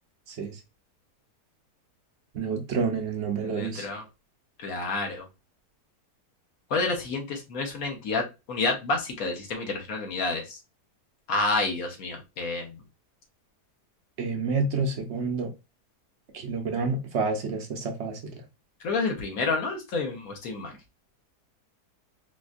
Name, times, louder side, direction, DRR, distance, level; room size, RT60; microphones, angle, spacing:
voice 1, 2.3-3.9 14.2-15.5 16.3-18.3, right 4 dB, 65° right, 0.6 m, -29 dB
voice 2, 3.4-4.0 4.6-5.2 6.7-8.2 8.5-10.6 11.3-12.7 18.8-20.7, left 3 dB, 65° left, 1.1 m, -29 dB
4.2 x 2.5 x 2.3 m
omnidirectional pair, 1.8 m